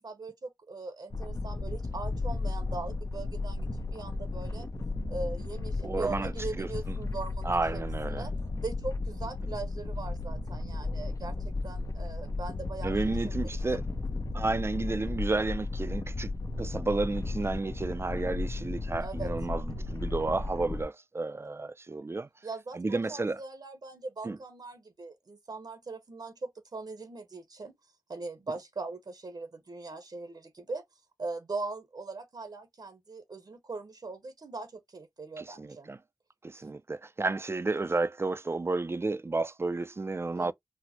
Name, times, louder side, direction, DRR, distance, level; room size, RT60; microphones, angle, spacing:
voice 1, 0.0-4.7 5.1-8.3 8.6-11.4 11.6-12.9 13.2-13.4 13.7-13.8 19.0-19.3 22.4-27.7 28.1-30.8 31.2-35.9 40.3-40.5, right 3 dB, 75° right, 0.8 m, -40 dB
sound 1, 1.1-20.8, left 3 dB, 50° left, 0.6 m, -34 dB
voice 2, 5.8-6.3 6.6-7.0 7.4-8.3 12.8-13.8 14.3-16.3 16.6-22.3 22.7-23.4 24.2-24.4 35.4-36.0 36.4-40.5, right 3 dB, 35° right, 0.3 m, -31 dB
4.3 x 2.0 x 2.8 m
wide cardioid pair, 50°, 7 cm